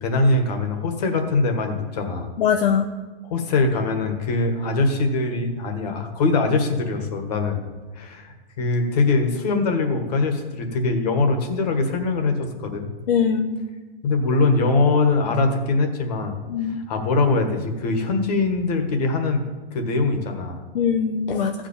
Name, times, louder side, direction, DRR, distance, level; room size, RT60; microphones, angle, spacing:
voice 1, 0.0-2.3 3.2-7.6 7.9-12.9 14.0-16.4 16.9-19.4 19.7-20.6, left 3 dB, 40° left, 5 dB, 1.7 m, -22 dB
voice 2, 2.4-2.8 13.1-13.6 16.5-16.8 20.7-21.5, left 7 dB, 60° left, 3 dB, 0.9 m, -21 dB
15.0 x 5.2 x 8.6 m, 1.3 s
supercardioid pair, 180°, 30 cm